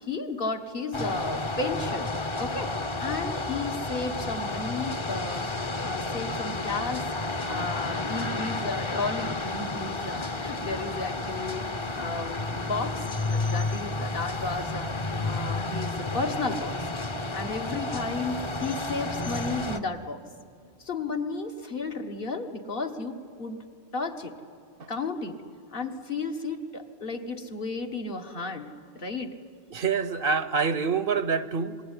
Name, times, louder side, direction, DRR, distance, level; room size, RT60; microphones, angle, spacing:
voice 1, 0.0-2.1 2.4-5.5 5.8-7.0 7.5-13.0 13.3-14.9 15.2-16.9 17.3-20.2 20.8-23.6 23.9-24.3 24.9-25.4 25.7-28.7 28.9-29.4, left 3 dB, 60° left, 1.7 m, -33 dB
sound 1, 0.9-19.8, left 2 dB, 30° left, 0.9 m, -31 dB
voice 2, 29.7-31.8, right 5 dB, 60° right, 1.0 m, -26 dB
26.5 x 20.0 x 9.8 m
omnidirectional pair, 1.1 m